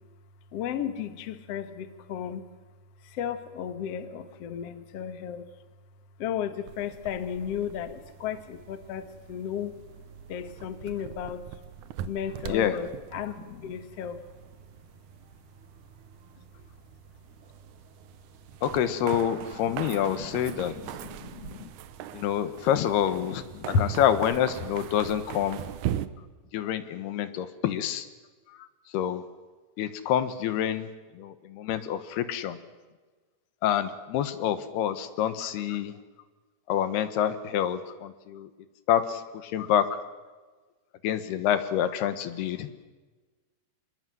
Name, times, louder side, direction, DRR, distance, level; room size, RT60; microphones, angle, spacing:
voice 1, 0.5-2.4 3.0-5.5 6.2-9.8 10.3-11.5 12.1-14.2 19.7-21.7 23.3-24.0, left 7 dB, 60° left, 10 dB, 1.7 m, -34 dB
sound 1, 6.7-26.1, right 11 dB, 85° right, 1.7 m, -41 dB
voice 2, 12.5-12.8 18.6-20.7 22.1-25.6 26.5-28.1 28.6-28.7 28.9-29.2 29.8-32.6 33.6-35.9 36.7-38.5 38.9-40.0 41.0-42.7, left 10 dB, 75° left, 12 dB, 3.1 m, -27 dB
27.0 x 22.0 x 7.8 m, 1.3 s
omnidirectional pair, 4.7 m